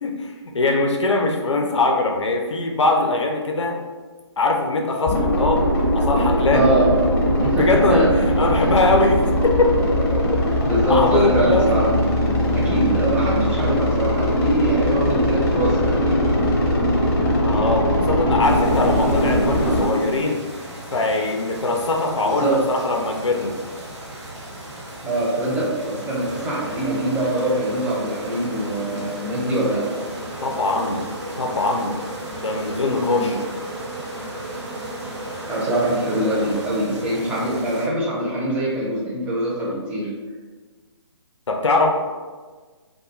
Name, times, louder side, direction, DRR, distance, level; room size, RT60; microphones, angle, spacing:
voice 1, 0.0-3.8 4.4-5.6 5.9-6.6 7.5-8.1 8.4-9.2 9.4-9.7 10.1-10.2 10.9-11.7 17.4-20.4 20.9-23.6 30.4-31.0 31.4-32.0 32.4-33.4 41.5-41.9, left 3 dB, 80° left, 1 dB, 0.4 m, -21 dB
sound 1, 5.1-19.9, equal, 30° left, 0.7 m, -20 dB
voice 2, 6.5-6.9 7.4-8.1 8.6-8.7 10.7-11.9 12.5-16.3 22.2-22.7 25.0-29.8 33.0-33.3 35.5-40.1, right 1 dB, 10° right, -6 dB, 0.4 m, -23 dB
sound 2, 18.4-37.9, right 1 dB, 80° right, 0.8 m, -38 dB
sound 3, 26.3-36.7, right 1 dB, 60° right, 0.6 m, -35 dB
2.3 x 2.1 x 3.0 m, 1.4 s
figure-of-eight pair, 140°, 15 cm